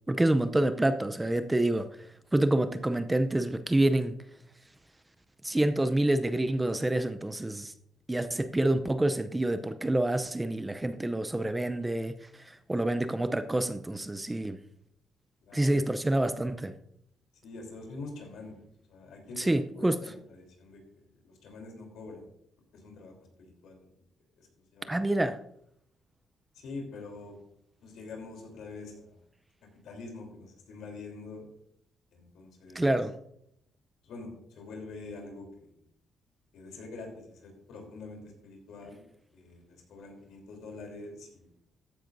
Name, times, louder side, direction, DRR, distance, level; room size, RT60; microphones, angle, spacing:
voice 1, 0.1-1.9 2.3-4.2 5.4-7.7 8.1-12.2 12.7-14.6 15.5-16.7 19.4-20.0 24.9-25.4 32.7-33.2, right 1 dB, 15° right, 0.6 m, -27 dB
voice 2, 15.4-15.8 17.4-18.6 18.9-19.5 19.7-20.1 20.4-20.8 21.2-22.2 22.8-23.1 23.6-23.8 24.7-25.0 26.6-27.3 27.8-29.1 29.8-31.5 32.1-32.8 34.0-35.7 36.5-37.1 37.4-39.0 39.3-41.5, left 3 dB, 75° left, 3.4 m, -44 dB
14.0 x 10.0 x 2.7 m
cardioid pair, 90°, 0 cm